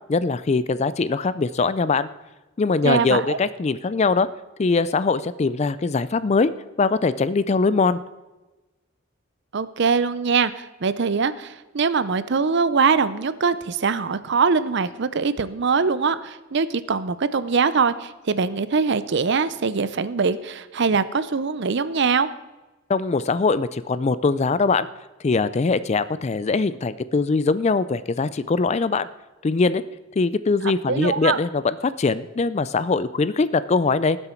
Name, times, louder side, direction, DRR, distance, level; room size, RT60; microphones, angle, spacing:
voice 1, 0.1-2.1 2.6-4.3 4.6-6.5 6.8-8.0 22.9-24.9 25.2-29.1 29.4-29.8 30.2-34.2, left 4 dB, 30° left, 15 dB, 0.4 m, -22 dB
voice 2, 2.8-3.4 9.5-22.3 30.9-31.4, right 5 dB, 55° right, 15 dB, 0.6 m, -22 dB
19.0 x 7.9 x 4.5 m, 1.1 s
head